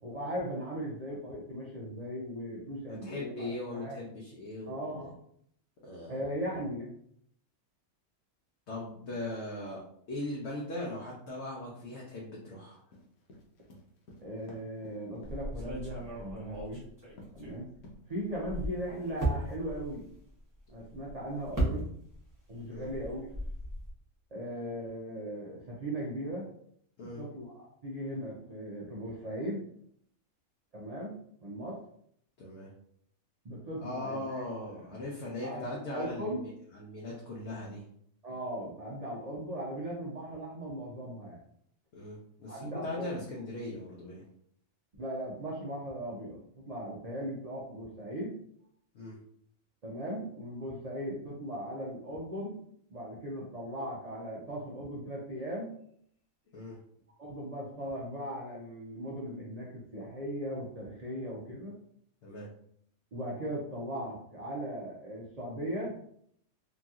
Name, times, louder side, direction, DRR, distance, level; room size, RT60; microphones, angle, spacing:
voice 1, 0.0-4.0 4.7-5.2 6.1-6.9 14.2-16.8 17.3-17.7 18.1-20.0 20.7-21.9 22.5-23.2 24.3-26.5 27.0-29.6 30.7-31.1 31.4-31.8 33.4-34.4 34.9-35.0 35.4-36.4 38.2-41.4 42.5-43.1 45.0-48.3 49.8-52.6 52.9-55.7 57.2-61.7 63.1-66.0, equal, 75° right, -5 dB, 0.3 m, -38 dB
voice 2, 3.0-5.1 5.8-6.2 8.7-9.8 10.1-12.8 17.4-17.6 22.7-22.9 27.0-27.2 32.4-32.7 33.8-37.8 41.9-44.2 48.9-49.2 56.5-56.8 62.2-62.5, left 2 dB, 60° left, -4 dB, 0.8 m, -39 dB
sound 1, 12.9-16.2 16.5-16.9 17.2-17.5 17.8-18.4, left 1 dB, 85° left, 1.2 m, -52 dB
sound 2, 15.2-17.9 18.3-22.3 22.6-23.9, right 1 dB, 20° right, 0.6 m, -36 dB
2.9 x 2.7 x 2.3 m, 0.68 s
omnidirectional pair, 1.5 m